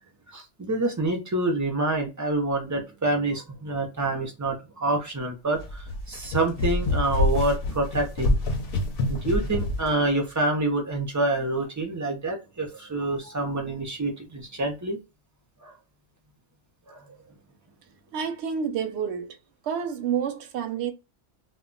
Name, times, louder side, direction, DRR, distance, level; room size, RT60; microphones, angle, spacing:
voice 1, 0.3-8.4 9.1-15.0 15.6-15.7 16.9-17.2, right 2 dB, 30° right, 0.3 m, -27 dB
sound 1, 5.6-9.9, left 2 dB, 60° left, 0.7 m, -26 dB
voice 2, 18.1-19.4 19.6-20.9, right 7 dB, 70° right, 0.8 m, -29 dB
2.2 x 2.1 x 3.7 m
omnidirectional pair, 1.2 m